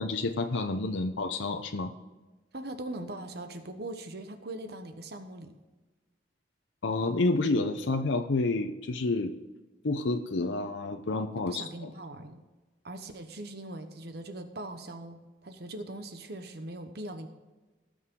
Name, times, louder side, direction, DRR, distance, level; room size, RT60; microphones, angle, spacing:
voice 1, 0.0-1.9 6.8-9.3 9.8-11.9, left 3 dB, 85° left, 6 dB, 0.7 m, -29 dB
voice 2, 2.5-5.5 11.5-12.4 12.8-17.3, right 1 dB, 60° right, 7 dB, 1.0 m, -41 dB
18.5 x 6.4 x 3.7 m, 1.2 s
head